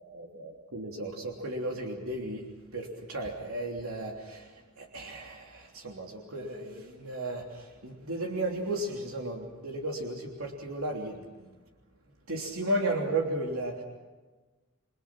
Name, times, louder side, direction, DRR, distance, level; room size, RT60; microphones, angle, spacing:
voice 1, 0.0-2.4 2.7-11.5 12.3-13.8, right 1 dB, 85° right, 0 dB, 3.2 m, -34 dB
29.5 x 23.5 x 6.1 m, 1.3 s
head